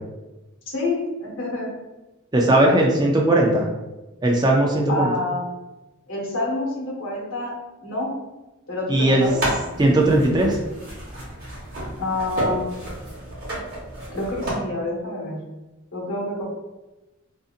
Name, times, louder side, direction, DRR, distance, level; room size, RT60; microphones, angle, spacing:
voice 1, 0.7-1.7 4.9-5.4 6.1-7.5 7.8-8.1 8.7-9.4 12.0-12.7 14.1-15.4 15.9-16.4, left 2 dB, 65° left, -3 dB, 0.9 m, -27 dB
voice 2, 2.3-3.7 4.2-5.1 8.9-9.2 9.8-10.6, right 1 dB, 20° right, -1 dB, 0.4 m, -18 dB
sound 1, 9.2-14.5, right 1 dB, 45° right, 0.9 m, -31 dB
2.6 x 2.5 x 2.4 m, 1.1 s
head